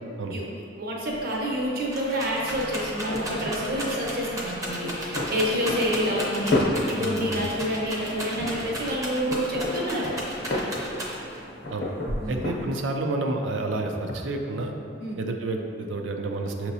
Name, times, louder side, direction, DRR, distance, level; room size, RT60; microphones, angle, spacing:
voice 1, 0.8-10.1 12.2-12.5 15.0-15.2, equal, 50° right, -3 dB, 0.8 m, -28 dB
Rattle, 1.1-1.2 1.5-11.4 12.1-12.7, right 1 dB, 20° right, 0.6 m, -34 dB
Wind instrument woodwind instrument, 2.1-6.6, left 2 dB, 30° left, 0.3 m, -43 dB
sound 1, 2.5-12.7, left 1 dB, 60° left, 0.7 m, -32 dB
voice 2, 7.0-7.4 11.7-11.9 12.3-14.7 15.2-16.7, right 2 dB, 80° right, 3 dB, 0.4 m, -30 dB
5.9 x 2.9 x 2.7 m, 2.4 s
head